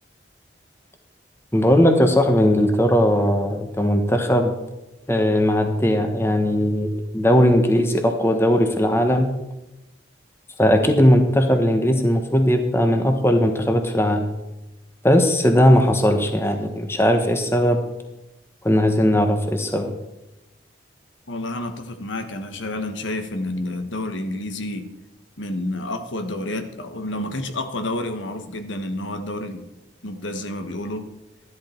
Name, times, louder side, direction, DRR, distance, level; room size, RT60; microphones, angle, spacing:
voice 1, 1.5-4.5 5.1-6.9 7.1-9.3 10.6-14.2 15.0-17.8 18.6-19.9, equal, 15° left, 5 dB, 1.0 m, -18 dB
voice 2, 21.3-24.8 25.4-29.6 30.0-31.1, left 1 dB, 80° left, 7 dB, 1.3 m, -29 dB
12.5 x 11.0 x 4.4 m, 0.95 s
head